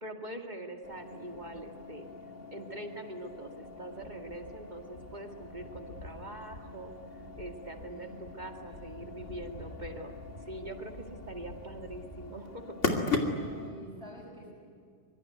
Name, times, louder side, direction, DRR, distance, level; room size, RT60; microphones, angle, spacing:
voice 1, 0.0-2.1 2.5-10.9 11.3-13.1, right 1 dB, 40° right, 3 dB, 2.3 m, -43 dB
sound 1, 0.8-13.7, left 3 dB, 85° left, 2.9 m, -39 dB
voice 2, 9.2-9.8 13.4-14.5, right 1 dB, 5° left, -5 dB, 6.7 m, -51 dB
25.0 x 23.0 x 9.4 m, 2.3 s
omnidirectional pair, 1.2 m